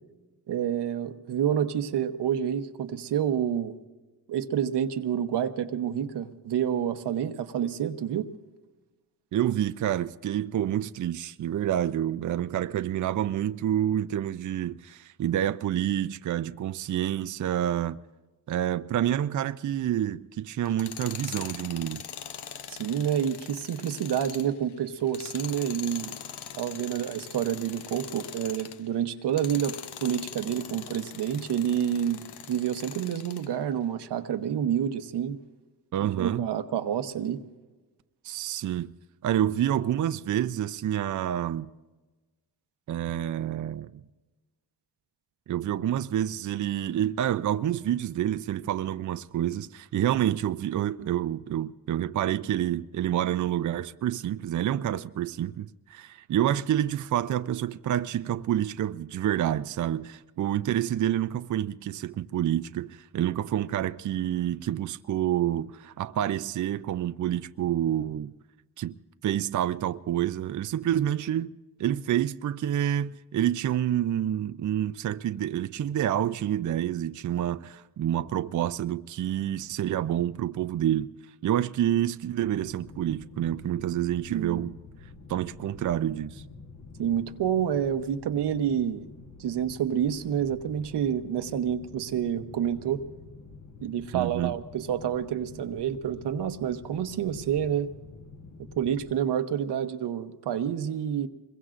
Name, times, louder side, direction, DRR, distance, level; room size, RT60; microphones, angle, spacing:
voice 1, 0.5-3.7 4.3-8.3 22.7-26.1 26.5-32.2 32.5-35.4 36.0-37.4 84.3-84.6 87.0-89.1 89.4-93.0 93.8-97.9 98.8-101.3, right 9 dB, 90° right, 0.9 m, -28 dB
voice 2, 9.3-18.0 18.5-22.1 35.9-36.5 38.2-38.9 39.2-41.7 42.9-44.0 45.5-68.3 68.8-68.9 69.2-71.5 71.8-81.1 81.4-84.8 85.3-86.4 94.1-94.5, right 11 dB, 50° right, 0.4 m, -28 dB
Tools, 20.6-28.8 29.3-33.5, left 9 dB, 80° left, 0.8 m, -42 dB
sound 1, 82.4-99.1, left 3 dB, 45° left, 1.3 m, -48 dB
26.0 x 22.0 x 2.5 m
cardioid pair, 95°, 40 cm